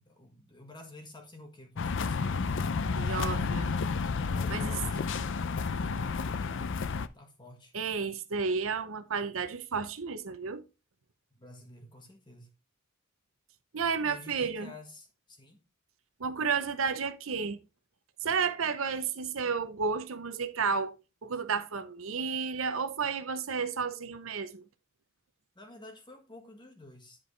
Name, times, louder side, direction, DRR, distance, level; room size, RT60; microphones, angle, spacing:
voice 1, 0.0-2.2 4.2-6.7 7.1-7.7 11.3-12.5 14.0-15.6 25.6-27.2, left 2 dB, 20° left, 1.7 m, -50 dB
sound 1, 1.8-7.1, left 4 dB, 60° left, 0.5 m, -31 dB
voice 2, 3.0-3.7 4.5-4.7 7.7-10.6 13.7-14.7 16.2-17.6 18.2-20.9 21.2-24.6, right 5 dB, 70° right, 0.8 m, -32 dB
10.5 x 4.7 x 3.3 m
head